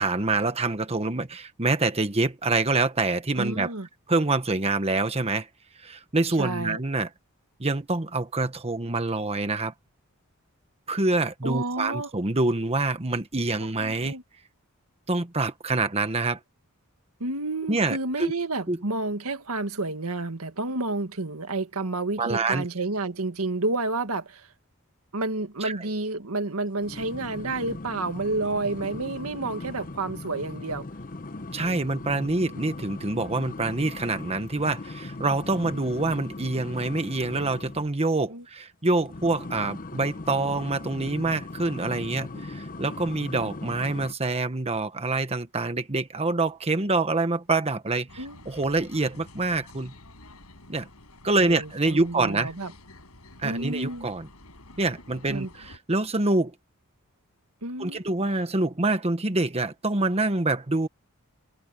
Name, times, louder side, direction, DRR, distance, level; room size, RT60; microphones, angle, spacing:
voice 1, 0.0-3.7 4.1-5.5 5.8-7.1 7.6-9.7 10.9-14.1 15.1-16.4 17.7-18.3 18.7-18.8 22.2-22.7 25.6-25.8 31.5-49.9 50.7-50.9 51.2-52.5 53.4-54.3 54.8-56.5 57.8-60.9, right 2 dB, 30° right, 1.2 m, -26 dB
voice 2, 3.4-3.9 6.4-6.8 11.4-12.1 13.8-14.2 17.2-24.5 25.1-30.9 31.6-31.8 35.7-35.8 38.3-38.4 48.2-48.4 51.4-52.7 53.4-54.1 55.3-55.5 57.6-58.0, right 2 dB, 80° right, 1.8 m, -30 dB
sound 1, 26.8-37.9 39.0-44.1, left 2 dB, 40° left, 1.0 m, -39 dB
sound 2, 48.1-55.8, left 2 dB, 90° left, 6.2 m, -49 dB
head